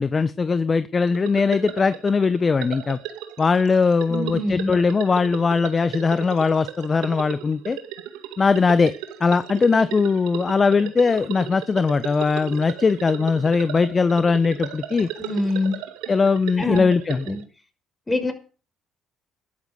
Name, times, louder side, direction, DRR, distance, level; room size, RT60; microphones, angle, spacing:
voice 1, 0.0-3.0 3.4-7.8 8.4-8.9 9.2-15.1 16.1-17.3, left 4 dB, 35° left, 14 dB, 1.1 m, -20 dB
sound 1, 1.1-17.4, right 11 dB, 80° right, 2.2 m, -36 dB
voice 2, 4.1-4.7 15.2-15.8 16.6-16.8 17.3-17.4 18.1-18.3, left 2 dB, 20° left, 8 dB, 5.6 m, -24 dB
13.0 x 12.0 x 6.6 m, 0.36 s
hypercardioid pair, 60°, 0 cm